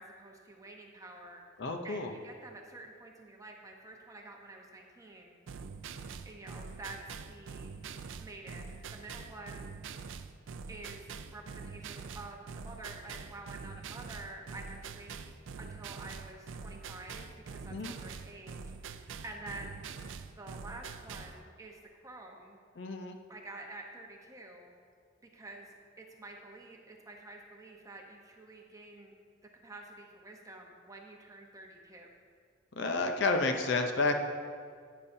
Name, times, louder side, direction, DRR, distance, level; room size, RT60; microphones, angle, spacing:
voice 1, 0.0-1.4 1.8-5.4 6.2-7.7 8.2-9.7 10.7-15.2 15.6-22.6 23.3-24.7 25.3-25.7 26.0-29.1 29.6-32.1, right 2 dB, 15° right, 0 dB, 0.9 m, -49 dB
voice 2, 1.6-2.1 17.7-17.9 22.8-23.2 32.8-34.2, left 3 dB, 60° left, 5 dB, 0.6 m, -30 dB
sound 1, 5.5-21.4, right 5 dB, 70° right, 0.4 m, -45 dB
11.0 x 9.8 x 2.7 m, 2.1 s
head